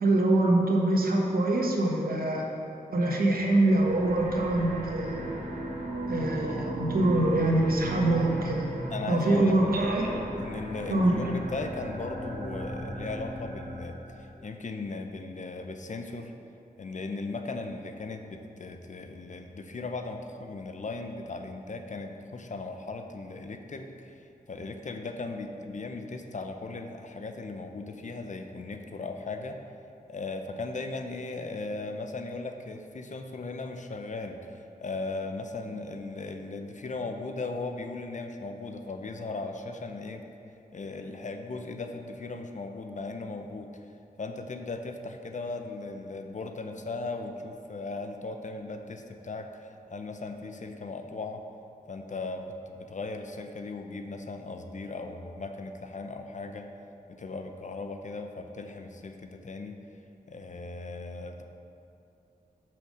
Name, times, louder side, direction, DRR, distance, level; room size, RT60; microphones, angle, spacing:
voice 1, 0.0-2.4 2.9-5.3 6.1-8.6 9.1-10.5 10.9-11.2, right 2 dB, 65° right, 0 dB, 1.1 m, -24 dB
sound 1, 3.7-14.3, right 1 dB, 45° right, 1.5 m, -37 dB
voice 2, 8.9-16.3 16.8-24.1 24.5-29.6 30.1-40.2 40.7-43.7 44.2-51.4 51.9-56.7 57.1-59.8 60.3-61.4, left 3 dB, 50° left, 5 dB, 0.7 m, -37 dB
5.7 x 5.2 x 6.4 m, 2.7 s
cardioid pair, 55°, 16 cm